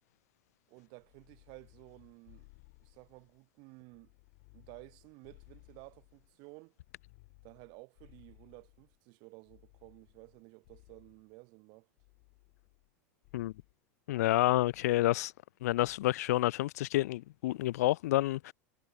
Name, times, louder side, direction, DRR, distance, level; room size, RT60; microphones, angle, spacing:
voice 1, 0.7-2.5 2.8-4.1 4.5-6.7 7.4-11.9, right 30 dB, 55° right, 7.9 m, -54 dB
sound 1, 1.0-3.4 3.9-6.3 6.8-9.0 9.5-11.3 12.0-12.9 13.2-13.7 14.6-15.3 15.6-16.1, left 35 dB, 60° left, 2.7 m, -61 dB
voice 2, 14.1-15.3 15.6-18.5, left 16 dB, 75° left, 0.4 m, -29 dB
hypercardioid pair, 110°, 9 cm